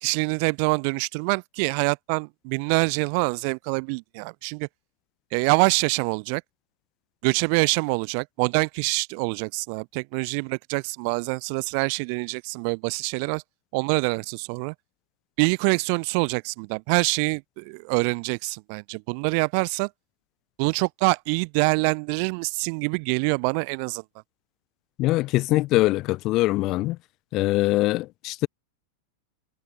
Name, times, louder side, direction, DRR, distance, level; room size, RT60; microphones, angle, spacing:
voice 1, 0.0-4.7 5.3-6.4 7.2-13.4 13.7-14.7 15.4-19.9 20.6-24.0, right 38 dB, 45° right, 0.6 m, -25 dB
voice 2, 25.0-27.0 27.3-28.5, left 18 dB, 40° left, 0.6 m, -23 dB
figure-of-eight pair, 90°, 0 cm